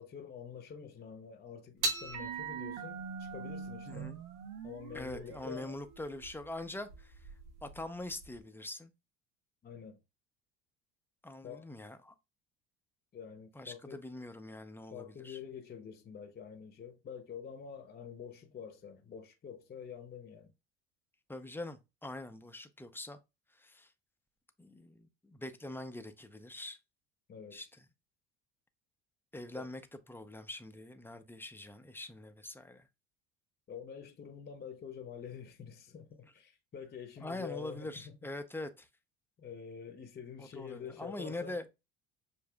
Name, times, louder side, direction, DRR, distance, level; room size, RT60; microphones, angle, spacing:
voice 1, 0.0-4.2 4.6-5.7 9.6-10.0 11.4-11.7 13.1-14.0 14.9-20.5 27.3-27.6 29.6-29.7 33.7-38.1 39.4-41.6, left 7 dB, 30° left, 0.9 m, -47 dB
sound 1, 1.8-8.4, right 4 dB, 85° right, 0.9 m, -41 dB
voice 2, 3.9-4.2 4.9-7.3 7.6-8.9 11.2-12.1 13.5-15.4 21.3-23.2 23.5-23.9 24.6-26.8 27.5-27.8 29.3-29.8 30.1-32.9 37.2-38.9 40.4-41.7, left 2 dB, 5° left, 0.6 m, -43 dB
6.8 x 2.6 x 2.3 m
supercardioid pair, 80°, 34 cm